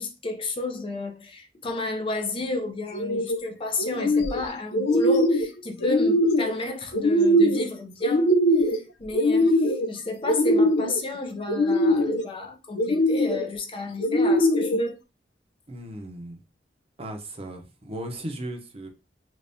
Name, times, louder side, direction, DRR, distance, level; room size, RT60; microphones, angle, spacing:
voice 1, 0.0-8.3 8.6-15.0, left 2 dB, 30° left, 0.5 m, -32 dB
sound 1, 2.9-3.4 3.8-4.4 4.7-5.5 5.8-6.5 6.9-7.7 8.0-8.8 9.1-9.9 10.3-11.0 11.5-12.2 12.8-13.4 14.0-14.8, equal, 80° left, 0.6 m, -21 dB
voice 2, 15.7-16.4 17.0-18.9, right 1 dB, 35° right, 0.7 m, -36 dB
3.5 x 3.0 x 2.7 m
head